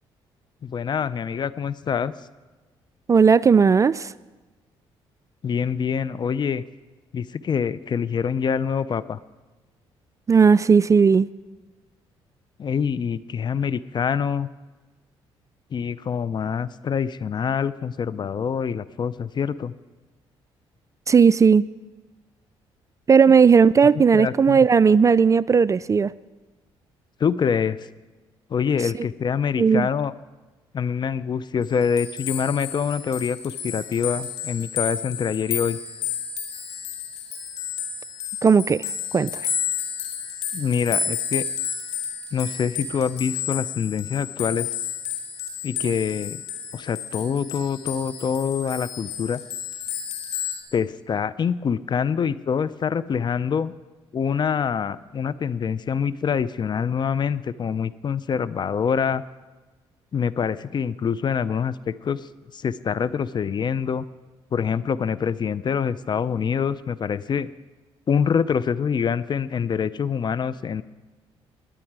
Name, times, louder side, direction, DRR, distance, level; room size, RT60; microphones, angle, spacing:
voice 1, 0.6-2.1 5.4-6.6 7.1-9.2 12.6-14.5 15.7-19.7 24.1-24.6 27.2-27.9 28.5-30.1 30.7-35.8 40.5-41.4 42.3-44.7 45.6-46.4 46.7-49.4 50.7-53.7 54.1-59.2 60.1-62.2 62.5-64.0 64.5-67.5 68.1-70.8, left 7 dB, 45° left, 17 dB, 0.5 m, -25 dB
voice 2, 3.1-4.1 10.3-11.3 21.1-21.7 23.1-26.1 29.6-29.9 38.4-38.8 39.1-39.4, right 6 dB, 30° right, 19 dB, 0.3 m, -16 dB
sound 1, 31.6-50.6, left 7 dB, 90° left, 1.9 m, -31 dB
19.5 x 9.9 x 4.7 m, 1.2 s
supercardioid pair, 75°, 11 cm